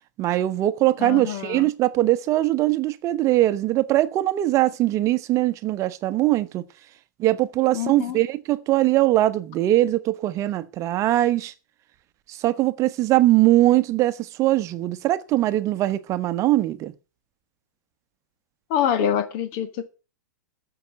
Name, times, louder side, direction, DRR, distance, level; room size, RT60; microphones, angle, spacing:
voice 1, 0.2-6.6 7.2-11.5 12.4-16.9, right 15 dB, 30° right, 1.1 m, -21 dB
voice 2, 1.0-1.7 7.7-8.2 18.7-19.9, left 9 dB, 45° left, 2.1 m, -26 dB
14.0 x 6.0 x 9.0 m
figure-of-eight pair, 105°, 10 cm